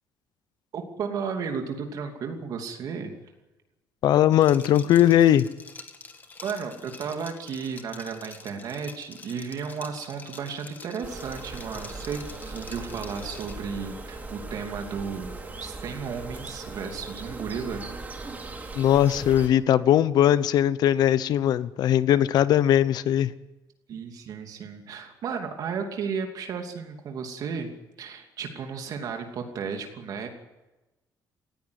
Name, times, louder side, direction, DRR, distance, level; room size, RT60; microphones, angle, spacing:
voice 1, 0.7-3.1 6.4-17.9 23.9-27.7 28.0-30.3, right 6 dB, 55° right, 4 dB, 2.8 m, -34 dB
voice 2, 4.0-5.5 18.8-23.3, left 11 dB, 65° left, 16 dB, 0.8 m, -20 dB
Liquid, 4.3-13.7, left 4 dB, 25° left, 2.0 m, -46 dB
sound 1, 11.0-19.5, right 3 dB, 20° right, 2.8 m, -39 dB
19.0 x 15.5 x 9.7 m, 1.0 s
cardioid pair, 160°, 8 cm